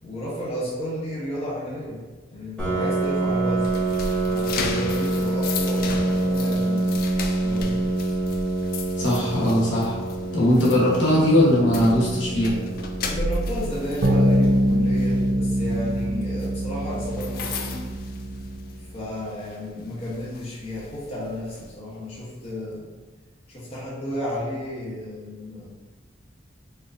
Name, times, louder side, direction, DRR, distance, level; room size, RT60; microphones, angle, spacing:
voice 1, 0.0-3.8 4.2-6.9 7.4-7.9 13.0-17.8 18.8-22.9 23.5-25.7, equal, 35° left, -7 dB, 0.8 m, -32 dB
Piano, 2.6-18.0, right 2 dB, 5° left, 0.9 m, -27 dB
sound 1, 3.0-18.9 19.3-19.5 20.0-21.7, left 3 dB, 50° left, 0.3 m, -35 dB
voice 2, 9.0-10.0 10.3-12.6, left 1 dB, 70° left, -6 dB, 0.9 m, -20 dB
sound 2, 14.0-18.8, equal, 60° right, 0.4 m, -23 dB
4.3 x 2.5 x 2.5 m, 1.4 s
head